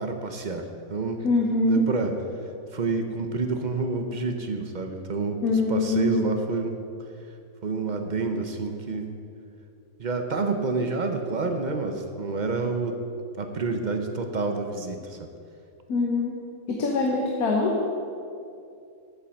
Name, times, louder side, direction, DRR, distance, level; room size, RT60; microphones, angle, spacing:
voice 1, 0.0-1.3 1.6-2.1 2.7-6.7 7.6-9.1 10.0-13.0 13.4-15.2, right 3 dB, 40° right, 5 dB, 0.7 m, -28 dB
voice 2, 1.2-1.8 5.4-6.2 15.9-16.3 16.7-17.8, left 3 dB, 90° left, 0 dB, 1.5 m, -23 dB
8.6 x 7.3 x 7.6 m, 2.5 s
omnidirectional pair, 1.5 m